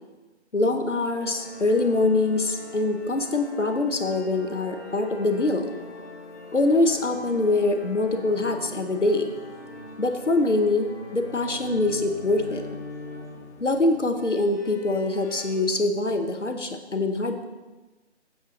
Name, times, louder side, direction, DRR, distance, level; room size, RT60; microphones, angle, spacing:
voice 1, 0.5-5.7 6.5-9.3 10.0-10.9 11.1-12.6 13.6-17.5, left 2 dB, 85° left, 6 dB, 1.3 m, -24 dB
sound 1, 1.2-15.6, left 3 dB, 15° left, 0.8 m, -42 dB
8.1 x 7.8 x 4.0 m, 1.2 s
figure-of-eight pair, 155°, 35 cm